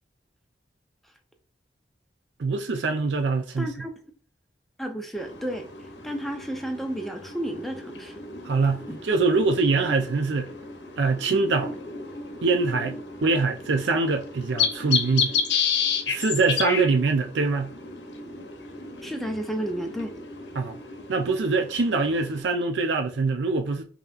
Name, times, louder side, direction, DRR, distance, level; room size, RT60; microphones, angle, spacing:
voice 1, 2.4-3.7 8.4-10.5 11.0-11.7 12.4-13.0 13.2-15.3 16.1-17.7 20.6-20.8 21.1-23.8, right 3 dB, 90° right, 0.5 m, -24 dB
voice 2, 3.6-3.9 4.8-5.7 6.0-8.2 8.9-9.0 19.0-20.2, right 1 dB, ahead, 0.6 m, -32 dB
sound 1, 5.1-22.4, left 6 dB, 75° left, 0.8 m, -32 dB
5.4 x 2.7 x 2.4 m
head